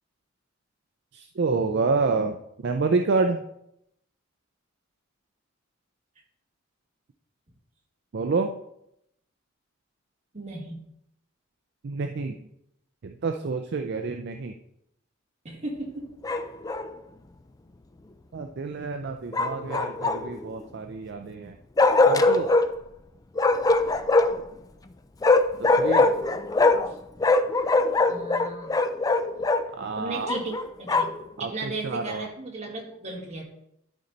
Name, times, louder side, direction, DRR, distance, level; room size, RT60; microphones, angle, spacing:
voice 1, 1.1-2.4 2.6-3.4 8.1-8.5 11.8-12.4 13.0-14.5 18.3-21.6 22.1-22.5 25.6-26.1 29.8-30.3 31.4-32.3, right 4 dB, 55° right, 5 dB, 0.4 m, -28 dB
voice 2, 10.3-10.8 15.4-16.1 26.9-27.0 28.1-28.7 29.9-31.1 31.4-33.4, right 2 dB, 35° right, -1 dB, 1.7 m, -35 dB
Bark, 16.2-16.9 19.3-20.4 21.8-22.7 23.4-24.5 25.2-26.9 27.2-29.6 30.3-31.2, left 3 dB, 15° left, 0.3 m, -22 dB
12.0 x 4.1 x 3.9 m, 0.79 s
head